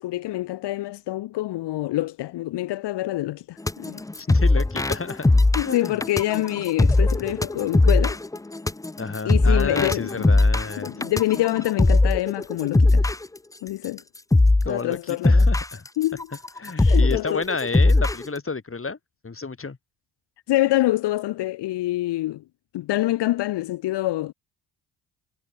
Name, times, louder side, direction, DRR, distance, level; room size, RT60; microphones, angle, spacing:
voice 1, 0.0-4.0 5.5-8.2 9.2-10.1 10.8-13.1 13.6-14.0 14.7-15.4 16.0-16.3 16.8-17.4 20.5-22.4 22.7-24.3, left 16 dB, 65° left, 1.4 m, -26 dB
sound 1, 3.7-13.2 13.8-14.0 14.3-14.7 15.1-18.2, left 2 dB, 10° left, 0.6 m, -19 dB
voice 2, 4.2-5.3 5.6-6.0 9.0-10.9 14.6-15.9 16.6-19.0 19.2-19.8, left 4 dB, 30° left, 6.7 m, -31 dB
hypercardioid pair, 55°, 44 cm